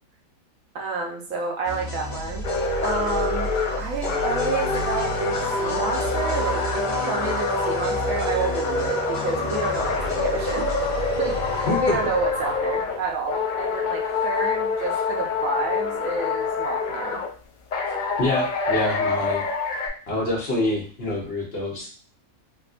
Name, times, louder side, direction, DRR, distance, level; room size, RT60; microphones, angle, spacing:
voice 1, 0.7-2.5 2.8-3.5 3.8-10.6 11.2-11.4 11.8-17.2, right 3 dB, 70° right, 0 dB, 1.0 m, -29 dB
sound 1, 1.6-13.4, right 1 dB, 25° left, 0.8 m, -33 dB
sound 2, 2.4-13.0 13.3-17.3 17.7-19.9, left 4 dB, 70° left, 0.4 m, -26 dB
voice 2, 11.7-12.0 18.2-19.5 20.1-21.9, left 2 dB, 50° left, -3 dB, 1.0 m, -26 dB
3.5 x 2.6 x 2.4 m, 0.40 s
omnidirectional pair, 1.5 m